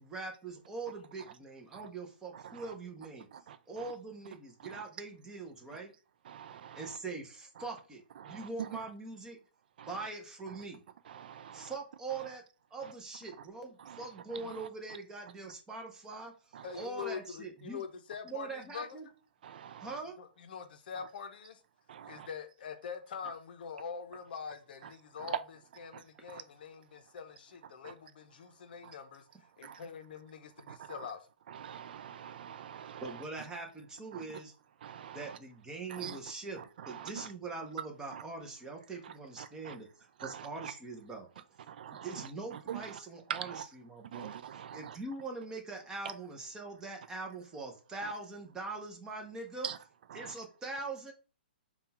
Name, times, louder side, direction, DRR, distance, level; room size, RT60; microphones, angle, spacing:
voice 1, 0.0-3.3 3.7-5.9 6.7-9.4 9.9-10.8 11.5-12.4 12.7-17.8 18.2-19.1 19.8-20.2 33.0-34.5 35.1-41.3 41.9-44.3 44.7-49.7 50.1-51.1, right 3 dB, 10° right, 0.7 m, -42 dB
voice 2, 6.3-7.0 8.2-8.5 9.8-9.9 11.1-11.7 13.9-14.1 14.3-14.6 16.5-16.7 19.4-20.0 21.9-22.3 25.3-25.4 26.3-26.4 27.8-27.9 30.7-31.0 31.5-33.1 34.1-34.2 34.8-35.4 35.9-36.2 36.8-37.3 38.1-38.2 39.4-39.8 40.2-40.7 41.7-42.9 43.3-43.6 44.1-45.0 48.0-48.1 49.6-49.8 50.1-50.3, right 9 dB, 60° right, 0.3 m, -43 dB
voice 3, 16.6-19.0 20.2-21.6 22.0-29.3 29.6-31.3, left 6 dB, 60° left, 0.6 m, -44 dB
3.7 x 2.3 x 4.2 m
hypercardioid pair, 150°, 6 cm